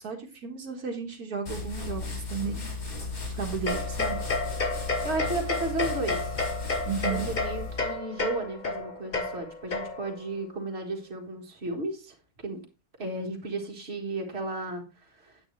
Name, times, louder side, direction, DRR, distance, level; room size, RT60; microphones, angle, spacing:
voice 1, 0.0-2.7 3.4-4.2 6.9-7.3, right 6 dB, 75° right, 2 dB, 1.8 m, -34 dB
sound 1, 1.5-8.0, left 3 dB, 65° left, 2.9 m, -35 dB
sound 2, 3.7-10.2, left 3 dB, 35° left, 1.0 m, -31 dB
voice 2, 5.0-6.4 7.1-12.1 12.4-12.6 13.0-14.8 15.2-15.3, right 2 dB, 45° right, 1 dB, 2.0 m, -34 dB
8.8 x 8.7 x 3.2 m, 0.32 s
omnidirectional pair, 1.6 m